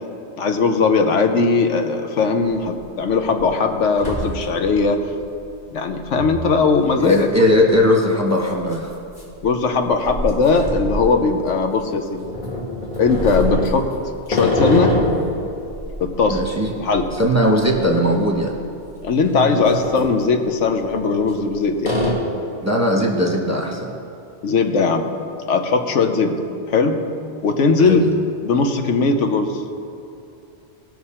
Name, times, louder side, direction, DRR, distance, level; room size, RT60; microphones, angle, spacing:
voice 1, 0.4-5.0 5.7-7.3 9.4-12.2 13.0-13.9 14.3-14.9 16.0-16.4 16.7-17.1 19.0-21.9 24.4-25.1 25.5-26.4 26.7-27.0 27.4-28.0 28.4-29.6, left 4 dB, 80° left, 6 dB, 1.2 m, -19 dB
sound 1, 2.4-2.5 3.0-3.4 3.7-4.8 5.1-5.2 6.2-6.4 7.1-7.2 7.5-7.6 8.6-11.7 12.2-15.3 15.7-18.1 18.3-18.5 19.0-20.0 20.9-21.5 21.8-22.1, left 1 dB, 40° left, 2.0 m, -25 dB
voice 2, 7.0-8.9 16.3-16.9 17.1-18.5 22.6-23.9 27.8-28.0, left 1 dB, 15° right, -1 dB, 1.0 m, -18 dB
18.5 x 6.1 x 4.3 m, 2.7 s
omnidirectional pair, 1.2 m